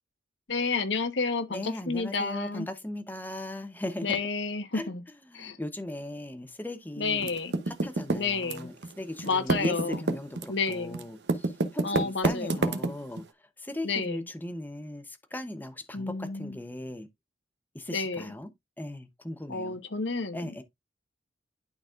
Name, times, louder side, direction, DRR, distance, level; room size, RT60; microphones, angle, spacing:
voice 1, 0.5-2.7 4.0-5.0 5.3-5.6 7.0-7.5 8.1-8.7 9.2-10.0 10.5-11.0 11.8-12.7 13.8-14.2 15.9-16.6 17.9-18.3 19.5-20.6, left 4 dB, 75° left, 1.2 m, -30 dB
voice 2, 1.5-4.2 4.7-4.9 5.3-7.3 7.7-13.2 13.6-17.1 17.7-18.5 18.8-19.8 20.3-20.6, left 1 dB, 10° left, 0.8 m, -38 dB
Typing, 7.2-8.9 9.2-13.2, right 2 dB, 65° right, 0.8 m, -28 dB
11.5 x 4.0 x 2.4 m
head